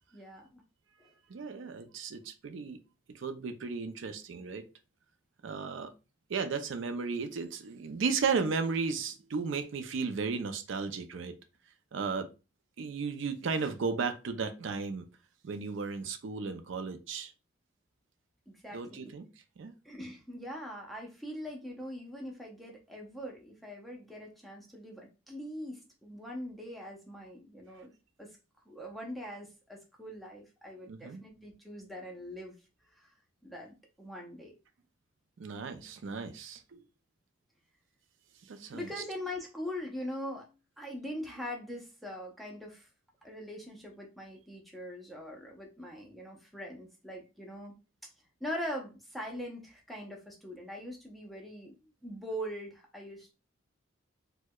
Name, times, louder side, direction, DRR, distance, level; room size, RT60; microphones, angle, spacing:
voice 1, 0.1-0.6 1.0-1.1 18.5-19.1 19.8-27.9 28.2-28.4 28.7-32.6 32.9-33.1 33.4-34.5 38.7-42.9 43.2-47.7 48.4-51.7 52.0-53.3, equal, ahead, -1 dB, 0.6 m, -42 dB
voice 2, 1.3-2.8 3.1-4.7 5.4-5.9 6.3-11.3 11.9-12.3 12.8-15.1 15.4-17.3 18.7-19.3 19.6-19.7 27.7-27.8 30.9-31.2 35.4-36.8 38.4-38.9, right 5 dB, 75° right, 8 dB, 0.4 m, -35 dB
4.5 x 2.1 x 2.2 m, 0.30 s
head